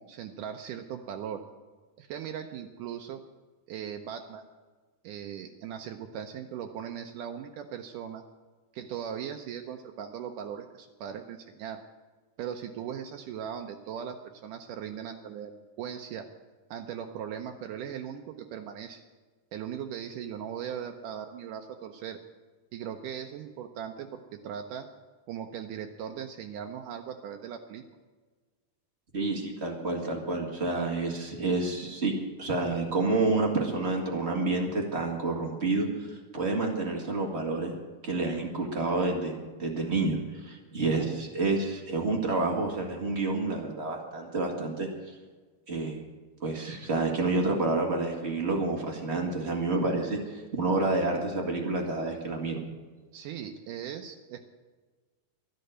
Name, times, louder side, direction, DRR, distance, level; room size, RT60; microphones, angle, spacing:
voice 1, 0.0-1.4 2.0-3.2 3.7-4.5 5.0-8.2 8.7-11.8 12.4-16.3 16.7-19.0 19.5-22.2 22.7-24.9 25.3-27.8 53.1-54.4, right 8 dB, 90° right, 5 dB, 1.8 m, -39 dB
voice 2, 29.1-32.1 32.4-37.7 38.0-39.3 39.6-44.9 45.7-46.0 46.4-52.6, right 3 dB, 40° right, 0 dB, 0.9 m, -29 dB
12.0 x 11.5 x 7.8 m, 1.4 s
omnidirectional pair, 4.6 m